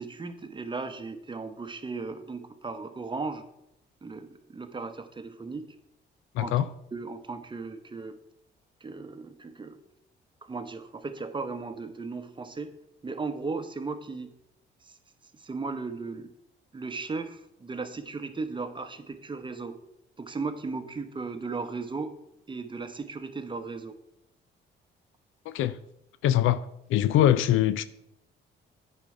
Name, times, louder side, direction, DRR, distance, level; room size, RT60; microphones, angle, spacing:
voice 1, 0.0-3.4 4.0-5.7 6.4-6.5 6.9-8.2 8.8-9.8 10.4-12.7 13.0-14.3 14.8-15.0 15.4-16.3 16.7-19.8 20.2-22.2 22.5-24.0, right 4 dB, 25° right, 1.0 m, -36 dB
voice 2, 6.3-6.7 25.5-25.8 26.2-26.6 26.9-27.8, left 12 dB, 85° left, 0.4 m, -23 dB
9.0 x 5.4 x 4.9 m
cardioid pair, 90°, 20 cm